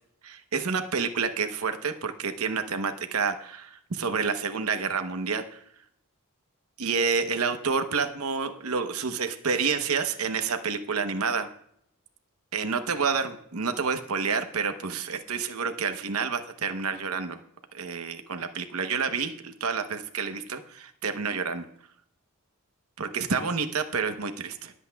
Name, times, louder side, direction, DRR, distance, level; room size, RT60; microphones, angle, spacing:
voice 1, 0.2-5.6 6.8-11.5 12.5-17.4 17.7-21.7 23.0-24.7, right 5 dB, 75° right, 7 dB, 0.9 m, -29 dB
20.0 x 8.1 x 2.3 m, 0.68 s
head